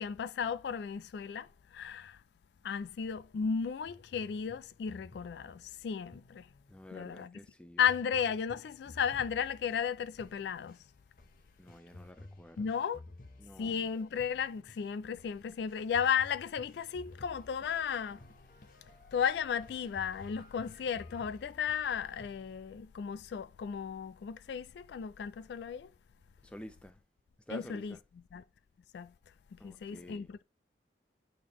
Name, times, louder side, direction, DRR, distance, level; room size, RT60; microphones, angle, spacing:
voice 1, 0.0-2.2 2.6-6.5 6.9-7.4 7.8-10.8 12.6-13.0 13.6-18.2 19.1-25.9 27.5-28.0 28.3-28.4 28.9-29.1 29.5-30.4, left 7 dB, 70° left, 0.3 m, -34 dB
sound 1, 3.9-7.0 7.9-22.6, left 2 dB, 50° left, 0.8 m, -54 dB
voice 2, 6.7-7.8 11.6-12.7 13.4-13.9 26.4-27.0 27.5-28.0 29.6-30.3, left 1 dB, 5° left, 0.6 m, -49 dB
8.5 x 3.8 x 3.0 m
head